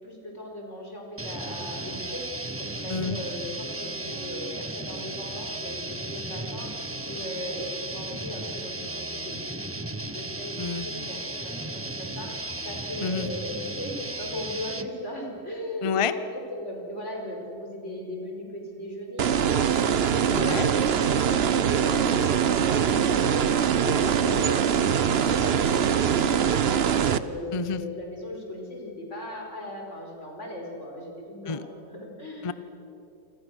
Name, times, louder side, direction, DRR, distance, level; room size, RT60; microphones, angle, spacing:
voice 1, 0.0-9.7 10.0-32.5, equal, 40° left, 0 dB, 5.1 m, -38 dB
sound 1, 1.2-14.9, right 2 dB, 15° right, 0.5 m, -35 dB
voice 2, 15.8-16.1 20.3-20.7 27.5-27.8 31.5-31.6 32.4-32.5, left 6 dB, 55° left, 13 dB, 0.3 m, -28 dB
sound 2, 19.2-27.2, right 8 dB, 55° right, 0.7 m, -23 dB
28.0 x 26.0 x 6.3 m, 2.8 s
omnidirectional pair, 1.9 m